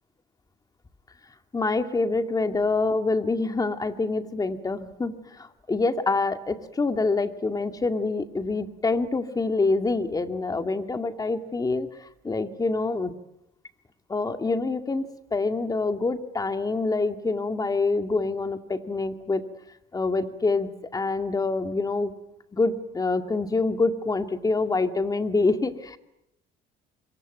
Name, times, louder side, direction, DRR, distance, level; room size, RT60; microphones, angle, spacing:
voice 1, 1.5-13.1 14.1-19.4 19.9-22.1 22.5-26.0, left 3 dB, 20° left, 8 dB, 2.2 m, -26 dB
25.5 x 23.5 x 9.3 m, 0.83 s
cardioid pair, 110°, 17 cm